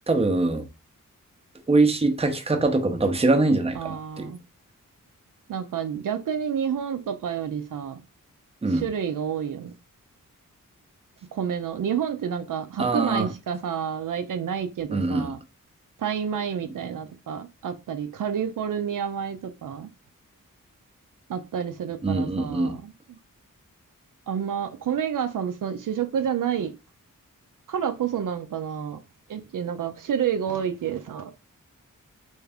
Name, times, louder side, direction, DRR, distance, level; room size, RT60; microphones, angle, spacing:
voice 1, 0.1-0.7 1.7-4.3 8.6-8.9 12.8-13.3 14.9-15.3 22.0-22.8, right 2 dB, 20° right, 0.6 m, -23 dB
voice 2, 3.8-4.4 5.5-8.0 8.7-9.7 11.3-15.4 16.0-19.9 21.3-22.9 24.3-26.7 27.7-29.0 29.3-31.3, right 8 dB, 75° right, 0.5 m, -29 dB
3.5 x 2.6 x 3.4 m
wide cardioid pair, 100°, 33 cm